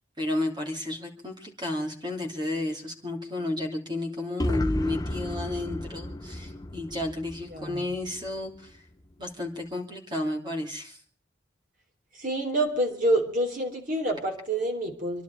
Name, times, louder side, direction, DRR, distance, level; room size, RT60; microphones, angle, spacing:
voice 1, 0.2-8.8 9.2-11.0, left 2 dB, 25° right, 2 dB, 2.9 m, -32 dB
sound 1, 4.4-8.3, left 1 dB, 20° left, 0.9 m, -32 dB
voice 2, 7.5-7.9 12.2-15.2, right 1 dB, 50° right, 3 dB, 3.5 m, -27 dB
27.0 x 11.5 x 4.6 m, 0.43 s
head